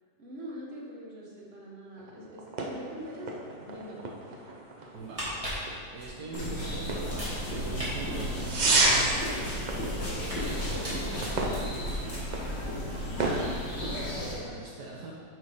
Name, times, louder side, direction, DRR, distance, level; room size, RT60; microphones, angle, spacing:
voice 1, 0.2-3.3 3.6-4.1 10.7-11.1, equal, 35° right, -5 dB, 1.6 m, -43 dB
sound 1, 2.0-14.5, right 2 dB, 85° right, 0.4 m, -33 dB
sound 2, 4.9-6.6 7.0-7.9 8.2-10.5 10.8-12.6 12.8-13.0, equal, 20° right, 2.2 m, -40 dB
voice 2, 4.9-5.6 5.9-8.3 8.6-9.6 10.2-11.2 13.6-15.1, right 3 dB, 70° right, -4 dB, 1.5 m, -42 dB
sound 3, 6.3-14.3, equal, 70° left, 2.6 m, -34 dB
8.4 x 4.5 x 5.2 m, 2.1 s
omnidirectional pair, 1.9 m